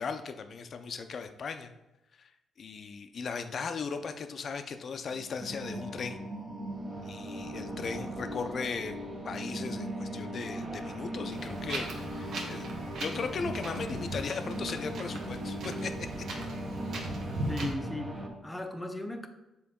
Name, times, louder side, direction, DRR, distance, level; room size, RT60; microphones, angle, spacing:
voice 1, 0.0-1.7 2.2-2.3 2.6-6.2 7.0-9.0 9.2-12.7 12.9-16.2, left 5 dB, 50° left, 8 dB, 0.5 m, -37 dB
sound 1, 5.1-18.3, right 1 dB, 40° right, 1.0 m, -39 dB
Wind, 11.3-17.7, right 1 dB, 70° right, 1.0 m, -39 dB
voice 2, 17.5-19.3, left 1 dB, 10° left, 6 dB, 0.6 m, -37 dB
6.9 x 3.8 x 3.6 m, 0.97 s
cardioid pair, 90°, 0 cm